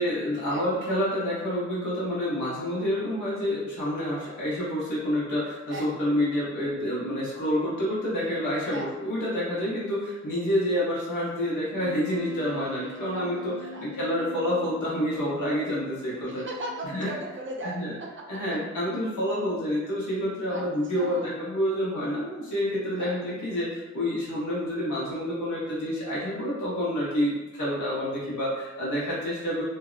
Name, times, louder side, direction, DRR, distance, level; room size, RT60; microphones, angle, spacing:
voice 1, 0.0-13.5 13.8-16.4 16.9-17.1 17.6-17.9 18.3-29.6, equal, 85° left, -8 dB, 1.0 m, -28 dB
Wind instrument woodwind instrument, 11.7-17.4, left 2 dB, 5° left, 0.5 m, -43 dB
voice 2, 13.1-13.9 16.3-17.8 20.5-20.6 21.0-21.3 23.0-23.2 27.2-27.3, right 2 dB, 45° right, -1 dB, 0.4 m, -37 dB
2.6 x 2.1 x 2.4 m, 1.1 s
wide cardioid pair, 130°, 30 cm